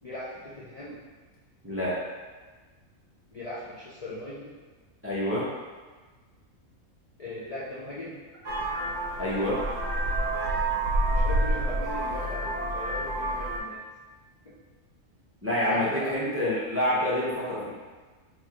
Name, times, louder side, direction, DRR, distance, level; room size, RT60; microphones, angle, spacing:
voice 1, 0.0-1.0 3.3-4.5 7.2-8.2 11.1-13.8 14.4-14.5 15.6-16.2, left 1 dB, 65° left, -7 dB, 0.3 m, -38 dB
voice 2, 1.6-2.0 5.0-5.5 9.2-9.6 15.4-17.7, left 1 dB, 15° right, -8 dB, 0.5 m, -27 dB
Vehicle horn car horn honking, 8.4-13.6, right 1 dB, 60° right, 0.9 m, -28 dB
3.1 x 2.5 x 4.3 m, 1.3 s
omnidirectional pair, 1.4 m